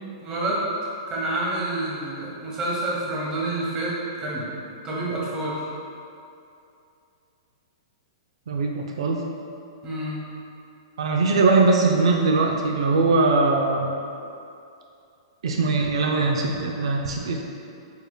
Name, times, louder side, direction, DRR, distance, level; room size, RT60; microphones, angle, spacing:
voice 1, 0.2-0.6 1.1-4.5 4.8-5.6 9.8-10.2, right 2 dB, 20° right, -6 dB, 0.8 m, -28 dB
voice 2, 8.5-9.2 11.0-13.9 15.4-17.4, right 3 dB, 80° right, 1 dB, 0.4 m, -21 dB
4.6 x 3.3 x 2.2 m, 2.6 s
hypercardioid pair, 160°, 3 cm